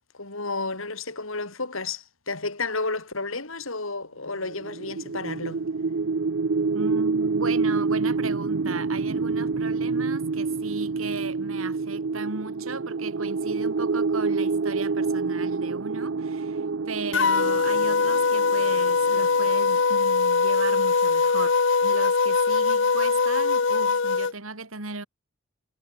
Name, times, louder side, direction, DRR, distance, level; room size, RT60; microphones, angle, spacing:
voice 1, 0.2-5.6, left 3 dB, 80° left, 5.4 m, -32 dB
sound 1, 4.4-19.5, right 4 dB, 60° right, 0.6 m, -27 dB
voice 2, 6.7-21.5 21.8-25.1, right 3 dB, 90° right, 4.0 m, -36 dB
sound 2, 17.1-24.3, left 4 dB, 60° left, 0.7 m, -22 dB
head